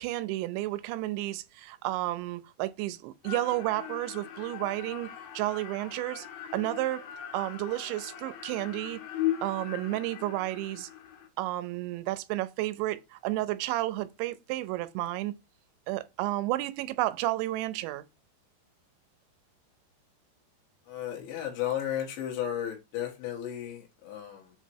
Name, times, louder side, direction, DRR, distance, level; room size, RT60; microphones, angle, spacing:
voice 1, 0.0-6.3 6.5-7.0 7.3-9.0 9.4-10.9 11.4-15.3 15.9-18.0, right 16 dB, 90° right, 2.9 m, -32 dB
sound 1, 3.2-11.3, left 11 dB, 75° left, 2.4 m, -38 dB
voice 2, 20.9-24.5, left 10 dB, 90° left, 3.7 m, -34 dB
7.5 x 3.0 x 4.5 m
omnidirectional pair, 5.1 m